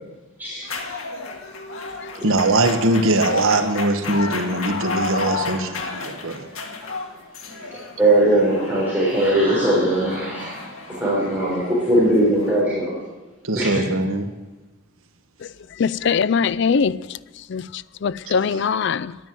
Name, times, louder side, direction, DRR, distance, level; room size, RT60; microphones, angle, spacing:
sound 1, 0.6-12.6, left 3 dB, 90° left, 1.9 m, -32 dB
voice 1, 2.2-6.4 13.4-14.3, right 2 dB, 80° right, 1.2 m, -21 dB
voice 2, 7.7-10.6 10.9-12.9 13.6-13.8, right 1 dB, 10° right, 3.9 m, -20 dB
voice 3, 15.8-17.2 17.5-19.2, left 6 dB, 60° left, 0.4 m, -22 dB
10.5 x 10.0 x 9.3 m
head